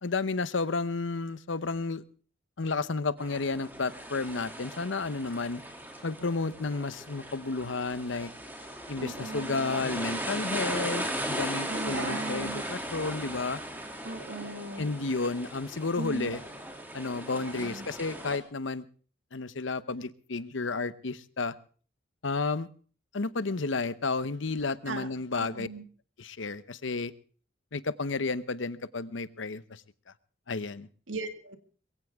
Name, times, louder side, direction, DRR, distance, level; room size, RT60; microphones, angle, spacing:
voice 1, 0.0-2.0 2.6-5.6 6.0-8.3 8.9-13.6 14.8-16.4 16.9-18.8 19.3-21.5 22.2-22.7 23.1-25.7 26.2-27.1 27.7-29.8 30.5-30.9, left 3 dB, 75° left, 16 dB, 0.9 m, -32 dB
sound 1, 3.2-18.4, right 1 dB, 10° right, 2.7 m, -37 dB
voice 2, 9.0-9.8 11.7-12.6 14.0-14.9 15.9-16.3 17.5-17.8 24.9-25.1 25.4-25.8 31.1-31.6, right 2 dB, 80° right, 8 dB, 2.1 m, -38 dB
22.0 x 16.0 x 3.6 m, 0.42 s
head